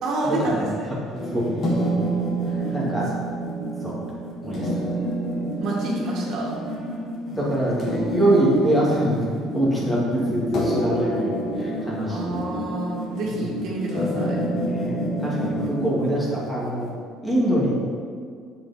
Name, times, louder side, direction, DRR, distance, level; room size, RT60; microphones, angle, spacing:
voice 1, 0.0-0.9 2.6-2.8 5.6-6.5 12.1-14.4, right 2 dB, 55° right, -4 dB, 2.1 m, -28 dB
sound 1, 1.1-16.9, right 1 dB, 40° left, 1.8 m, -28 dB
voice 2, 2.7-3.1 3.8-4.0 4.4-4.7 7.3-9.2 9.5-12.5 14.6-16.9 17.2-17.7, right 1 dB, 10° left, -6 dB, 2.2 m, -24 dB
8.3 x 7.0 x 4.3 m, 2.1 s
cardioid pair, 150°, 0 cm